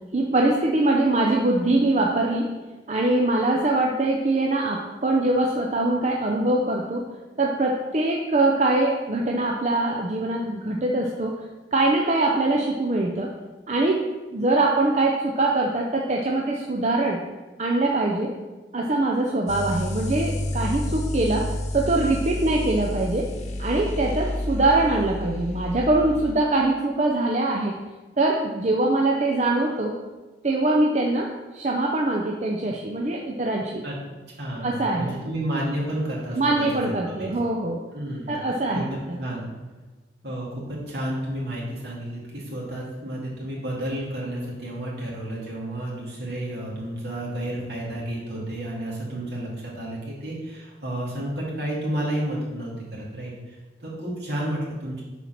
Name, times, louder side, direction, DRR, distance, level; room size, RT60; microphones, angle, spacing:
voice 1, 0.1-2.5 2.9-7.1 7.4-11.4 11.7-13.3 13.7-17.2 17.6-18.4 18.7-23.3 23.6-27.8 28.2-30.0 30.4-33.9 34.6-35.1 36.4-37.8 38.3-39.2, right 2 dB, 40° right, 0 dB, 0.6 m, -23 dB
sound 1, 19.5-26.3, left 1 dB, 40° left, 0.8 m, -30 dB
voice 2, 34.3-37.3 37.9-38.4 38.7-39.5 40.2-55.0, right 1 dB, 70° right, -5 dB, 2.5 m, -31 dB
6.9 x 4.6 x 5.8 m, 1.2 s
head